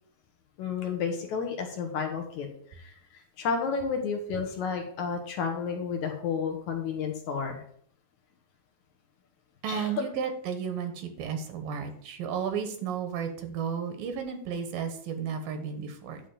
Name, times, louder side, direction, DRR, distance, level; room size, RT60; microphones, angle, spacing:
voice 1, 0.6-2.9 3.4-7.6 9.7-9.9, left 5 dB, 65° left, 3 dB, 2.4 m, -31 dB
voice 2, 9.6-16.2, right 7 dB, 80° right, 7 dB, 2.9 m, -33 dB
10.5 x 3.7 x 6.9 m, 0.62 s
omnidirectional pair, 4.0 m